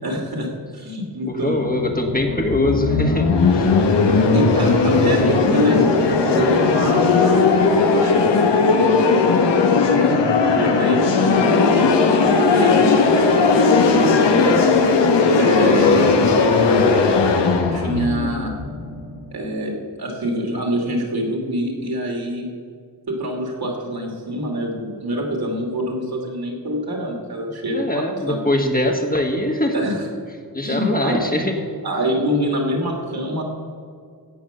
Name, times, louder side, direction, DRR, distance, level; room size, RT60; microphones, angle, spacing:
voice 1, 0.0-1.6 4.3-7.5 7.9-9.6 10.0-10.1 10.4-11.8 12.2-13.3 13.6-14.4 14.9-15.0 15.4-16.1 17.7-18.5 19.3-19.7 20.0-22.5 23.1-28.4 29.7-30.0 30.6-31.2 31.8-33.4, equal, 60° right, -1 dB, 2.8 m, -25 dB
voice 2, 1.2-3.7 27.7-29.9 30.5-31.7, left 1 dB, 20° left, 2 dB, 1.6 m, -22 dB
sound 1, 1.5-19.3, left 4 dB, 85° left, 1.1 m, -17 dB
16.0 x 5.4 x 6.9 m, 2.2 s
cardioid pair, 60°, 41 cm